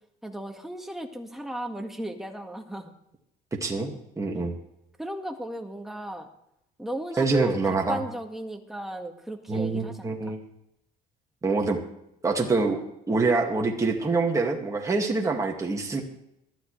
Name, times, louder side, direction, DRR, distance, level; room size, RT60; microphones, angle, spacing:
voice 1, 0.2-2.9 5.0-6.3 6.8-10.3, right 1 dB, ahead, 3 dB, 1.8 m, -36 dB
voice 2, 3.6-4.6 7.2-8.0 9.5-10.4 11.4-11.8 12.2-12.8 13.1-16.0, right 3 dB, 20° right, 0 dB, 2.2 m, -25 dB
19.5 x 13.0 x 3.3 m, 0.80 s
cardioid pair, 110°, 17 cm